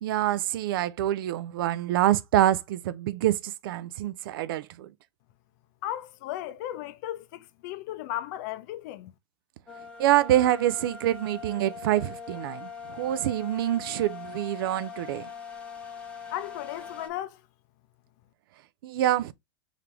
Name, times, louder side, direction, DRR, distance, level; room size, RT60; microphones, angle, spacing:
voice 1, 0.0-4.9 10.0-15.3 18.8-19.3, right 13 dB, 55° right, 0.4 m, -26 dB
voice 2, 5.8-9.1 16.3-17.3, left 13 dB, 45° left, 0.6 m, -35 dB
sound 1, 9.7-17.1, left 6 dB, 10° left, 0.7 m, -42 dB
3.8 x 3.3 x 3.0 m
supercardioid pair, 150°, 14 cm